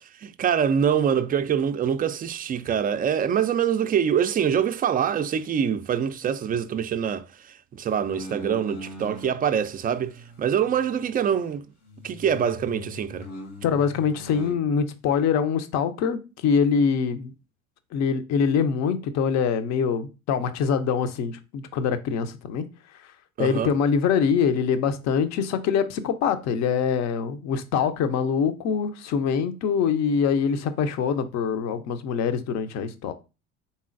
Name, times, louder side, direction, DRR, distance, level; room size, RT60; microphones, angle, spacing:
voice 1, 0.2-11.6 12.0-13.3 23.4-23.7, right 8 dB, 25° right, 0.4 m, -25 dB
sound 1, 8.1-9.3 9.9-11.6 11.9-14.6, left 1 dB, 80° left, 1.4 m, -41 dB
voice 2, 13.6-17.3 17.9-22.7 23.4-33.1, left 6 dB, 50° left, 0.6 m, -24 dB
4.1 x 3.7 x 2.5 m
hypercardioid pair, 70°, 36 cm